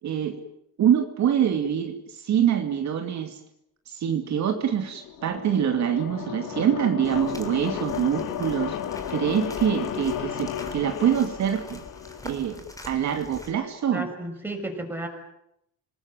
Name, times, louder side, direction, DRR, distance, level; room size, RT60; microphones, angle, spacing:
voice 1, 0.0-0.4 0.8-3.4 3.9-8.8 9.1-11.8 12.2-14.1, right 9 dB, 60° right, 5 dB, 2.5 m, -25 dB
sound 1, 4.7-12.6, left 9 dB, 75° left, 2.5 m, -34 dB
sound 2, 7.0-13.5, left 1 dB, 10° left, 3.9 m, -45 dB
voice 2, 13.9-15.1, right 1 dB, 5° right, 3 dB, 6.6 m, -33 dB
26.5 x 20.0 x 9.1 m, 0.81 s
cardioid pair, 120°, 32 cm